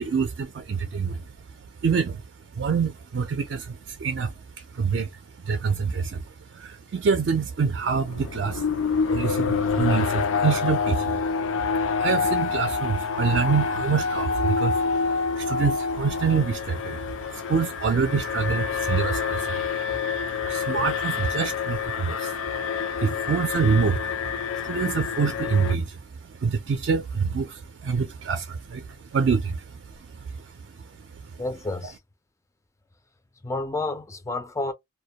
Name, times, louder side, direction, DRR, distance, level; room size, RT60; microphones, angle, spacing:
voice 1, 0.0-2.2 2.5-20.0 20.3-31.4 31.8-31.9, right 5 dB, 60° right, 0.4 m, -27 dB
Alarm, 7.8-25.8, left 5 dB, 90° left, 0.4 m, -27 dB
voice 2, 31.4-32.0 33.4-34.7, left 2 dB, 15° left, 0.3 m, -30 dB
2.1 x 2.1 x 2.8 m
head